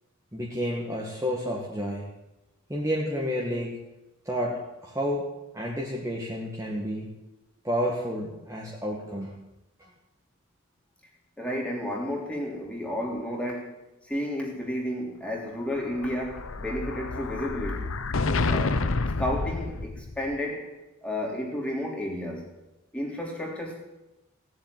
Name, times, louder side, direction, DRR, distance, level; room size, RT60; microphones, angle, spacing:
voice 1, 0.3-2.1 2.7-3.7 4.3-5.3 5.5-7.1 7.6-9.3 9.8-9.9, equal, 15° right, -3 dB, 2.0 m, -30 dB
voice 2, 11.4-18.0 18.5-18.9 19.2-20.7 21.0-22.5 22.9-23.8, left 1 dB, 5° left, -1 dB, 3.3 m, -32 dB
Explosion, 15.7-20.3, left 3 dB, 70° left, 0.8 m, -29 dB
17.0 x 7.7 x 9.6 m, 0.97 s
head